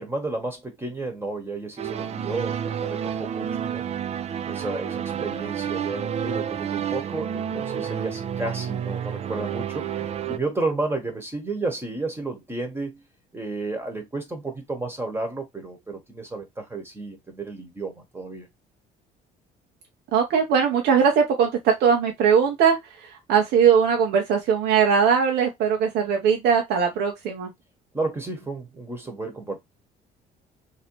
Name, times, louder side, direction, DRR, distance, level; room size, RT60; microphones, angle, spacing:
voice 1, 0.0-3.8 4.4-9.9 10.3-13.0 13.3-18.5 27.9-29.6, right 3 dB, 15° right, 1.1 m, -32 dB
sound 1, 1.8-10.4, right 8 dB, 40° right, 0.4 m, -30 dB
voice 2, 20.1-22.8 23.3-27.5, right 7 dB, 80° right, 0.9 m, -20 dB
3.1 x 2.8 x 3.0 m
cardioid pair, 110°, 17 cm